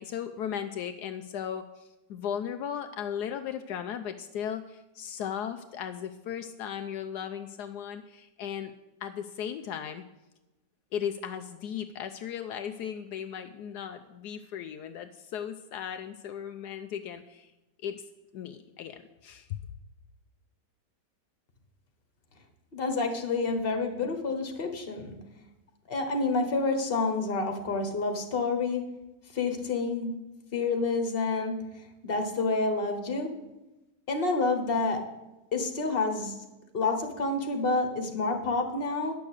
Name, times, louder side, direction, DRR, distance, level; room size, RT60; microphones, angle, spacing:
voice 1, 0.0-8.7 9.0-10.0 10.9-17.5 17.8-18.0 18.3-19.5, left 8 dB, 80° left, 8 dB, 1.2 m, -36 dB
voice 2, 22.7-25.1 25.9-28.8 29.3-30.1 30.5-31.5 32.0-33.3 34.1-35.0 35.5-36.3 36.7-39.1, left 3 dB, 35° left, 5 dB, 1.5 m, -28 dB
10.5 x 6.9 x 8.1 m, 1.0 s
omnidirectional pair, 1.8 m